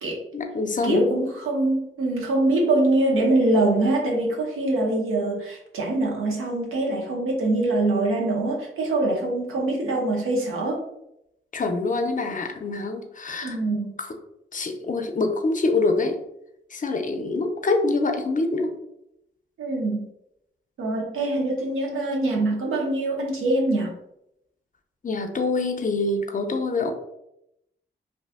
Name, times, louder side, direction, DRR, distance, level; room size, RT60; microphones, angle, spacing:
voice 1, 0.3-1.1 11.5-13.6 14.0-14.2 14.5-16.2 16.7-18.7 25.0-26.9, left 3 dB, 40° left, 5 dB, 0.5 m, -25 dB
voice 2, 0.8-10.8 13.4-13.9 19.6-20.1 20.8-23.9, right 2 dB, 85° right, -1 dB, 0.6 m, -24 dB
2.6 x 2.3 x 2.4 m, 0.82 s
supercardioid pair, 40°, 21 cm